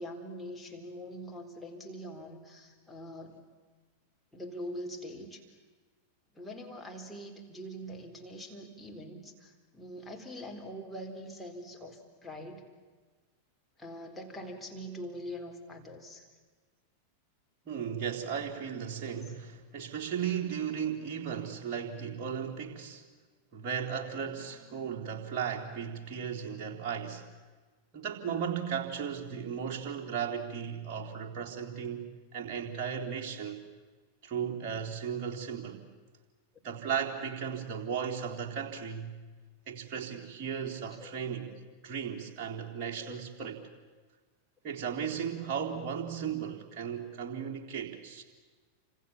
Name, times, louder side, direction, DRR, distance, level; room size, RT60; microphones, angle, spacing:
voice 1, 0.0-3.4 4.3-5.4 6.3-12.7 13.8-16.3 19.2-19.4 34.5-34.6 40.9-41.1 41.5-41.6 43.0-43.2, equal, 5° left, 0 dB, 4.3 m, -43 dB
voice 2, 17.7-23.0 23.5-27.3 27.9-33.7 34.2-35.8 36.6-39.1 39.7-41.5 41.8-43.6 44.6-48.2, right 7 dB, 35° right, 0 dB, 3.9 m, -36 dB
29.5 x 26.0 x 7.4 m, 1.4 s
figure-of-eight pair, 90°, 0 cm